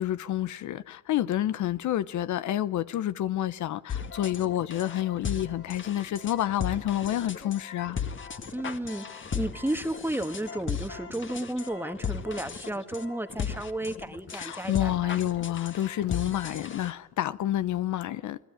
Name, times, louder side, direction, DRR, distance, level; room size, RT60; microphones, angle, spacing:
voice 1, 0.0-8.0 14.3-18.4, left 12 dB, 75° left, 0.8 m, -29 dB
sound 1, 3.9-16.9, left 7 dB, 40° left, 1.9 m, -36 dB
voice 2, 8.5-15.3, right 1 dB, 5° right, 1.5 m, -33 dB
29.0 x 19.0 x 9.0 m
cardioid pair, 90°, 30 cm